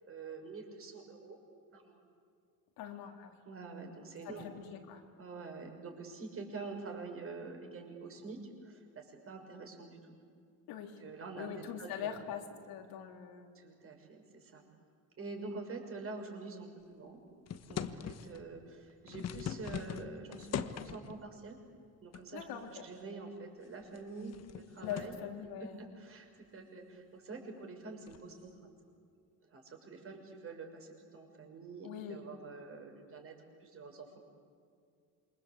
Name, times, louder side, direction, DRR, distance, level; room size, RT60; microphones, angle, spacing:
voice 1, 0.1-1.4 1.7-2.0 3.5-4.5 5.2-8.4 8.6-10.1 11.0-11.5 11.8-12.3 13.5-14.6 15.2-17.2 17.7-21.6 22.0-22.4 22.8-25.1 25.6-26.3 26.5-28.5 29.5-33.3 33.6-34.2, right 3 dB, 40° right, 3 dB, 6.4 m, -46 dB
voice 2, 2.8-3.4 4.2-5.0 10.7-11.0 11.4-13.6 22.3-22.8 24.8-25.8 31.8-32.2, left 9 dB, 90° left, 3 dB, 3.8 m, -43 dB
sound 1, 17.5-18.4 18.9-21.2 22.1-22.6 23.0-23.1 23.7-25.2 28.1-28.3, left 8 dB, 45° left, 1.4 m, -41 dB
27.5 x 25.5 x 8.3 m, 2.3 s
cardioid pair, 130°, 35 cm